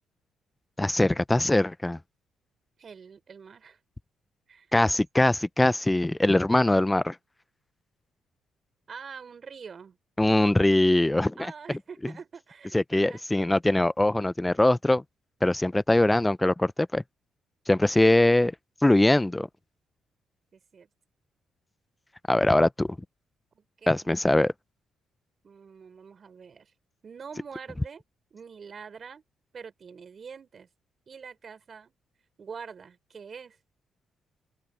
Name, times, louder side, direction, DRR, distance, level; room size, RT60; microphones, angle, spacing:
voice 1, 0.8-2.0 4.7-7.2 10.2-11.5 12.7-15.0 15.4-17.0 17.7-18.5 18.8-19.5 22.3-23.0 23.9-24.5, left 1 dB, 10° left, 0.6 m, -22 dB
voice 2, 2.8-3.8 4.5-4.7 8.9-10.0 11.4-13.2 20.5-20.9 23.5-24.1 25.4-26.7 27.0-28.0 28.3-29.2 29.5-30.7 31.1-31.9 32.4-33.6, right 6 dB, 45° right, 4.4 m, -45 dB
open air
cardioid pair, 90°, 0 cm